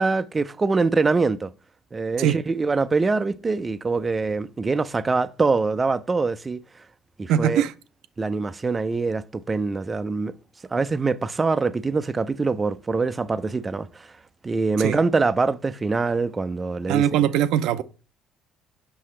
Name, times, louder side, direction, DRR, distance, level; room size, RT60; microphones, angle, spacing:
voice 1, 0.0-1.5 1.9-6.6 7.2-7.6 8.2-10.3 10.7-14.1 14.4-17.1, right 4 dB, 25° right, 0.5 m, -24 dB
voice 2, 7.3-7.7 14.8-15.0 16.9-17.8, right 10 dB, 75° right, 0.5 m, -21 dB
5.9 x 5.8 x 3.2 m
supercardioid pair, 90°, 0 cm